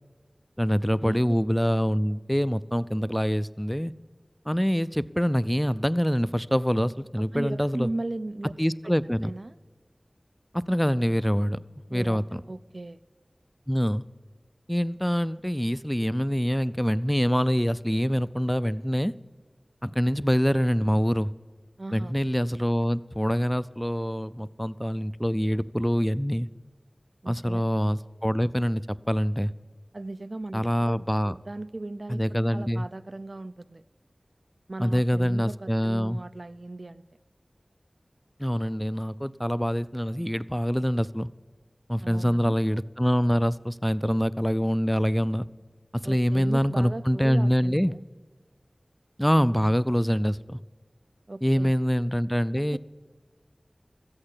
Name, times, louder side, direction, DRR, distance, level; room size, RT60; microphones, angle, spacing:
voice 1, 0.6-3.9 4.5-7.9 8.6-9.3 10.5-11.6 11.9-12.4 13.7-14.0 14.7-19.1 19.8-21.3 21.9-26.5 27.3-29.5 30.5-31.3 32.1-32.9 34.8-36.2 38.4-41.3 41.9-45.5 45.9-47.9 49.2-50.6 51.4-52.8, equal, 5° left, 16 dB, 0.4 m, -25 dB
voice 2, 7.3-8.5 8.8-8.9 9.2-9.6 11.9-13.0 21.8-22.1 27.2-27.6 29.9-33.8 34.7-37.0 42.0-42.6 46.0-48.0 51.3-51.8 52.7-52.8, right 2 dB, 55° right, 15 dB, 0.4 m, -37 dB
14.0 x 8.8 x 9.8 m, 1.5 s
wide cardioid pair, 55°, 0 cm